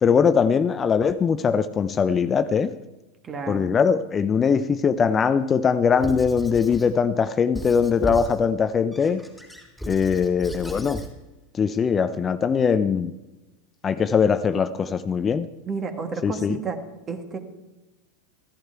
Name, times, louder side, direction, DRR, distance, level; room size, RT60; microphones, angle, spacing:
voice 1, 0.0-2.7 3.5-9.3 9.8-11.0 11.5-13.1 13.8-15.5 16.2-16.6, left 6 dB, 25° left, 12 dB, 0.5 m, -21 dB
voice 2, 3.2-3.8 15.7-16.8 17.1-17.4, right 5 dB, 30° right, 7 dB, 1.6 m, -31 dB
Squeak / Writing, 6.0-6.9 7.5-8.4 8.9-11.1, equal, 5° right, 3.3 m, -35 dB
14.0 x 11.0 x 4.6 m, 1.1 s
hypercardioid pair, 95°, 0 cm